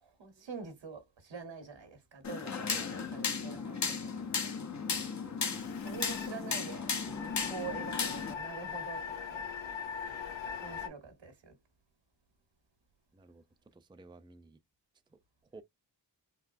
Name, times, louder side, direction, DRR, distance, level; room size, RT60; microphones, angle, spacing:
voice 1, 0.0-4.5 5.8-9.4 10.6-11.5, right 5 dB, 85° right, 1.4 m, -46 dB
sound 1, 2.2-8.3, left 5 dB, 40° left, 0.8 m, -35 dB
sound 2, 5.4-10.9, left 7 dB, 85° left, 0.7 m, -41 dB
voice 2, 13.1-13.4 13.7-14.6 15.1-15.2 15.5-15.6, right 3 dB, 10° right, 0.5 m, -53 dB
3.9 x 2.2 x 2.6 m
cardioid pair, 55°, 43 cm